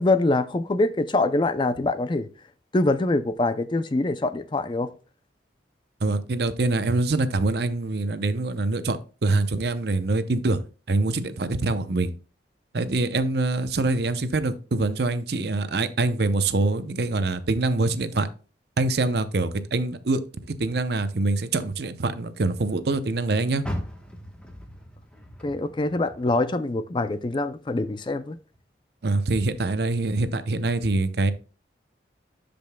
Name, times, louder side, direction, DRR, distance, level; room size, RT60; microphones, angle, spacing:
voice 1, 0.0-2.3 2.7-4.9 25.4-28.4, left 2 dB, 25° left, 0.4 m, -24 dB
voice 2, 6.0-10.6 10.9-12.1 12.7-18.3 18.8-20.2 20.5-23.6 29.0-31.3, right 2 dB, 60° right, 0.6 m, -24 dB
Car, 23.6-26.9 27.3-28.6 29.1-29.2 29.8-29.9, equal, 5° left, 1.1 m, -38 dB
12.5 x 5.2 x 2.2 m
head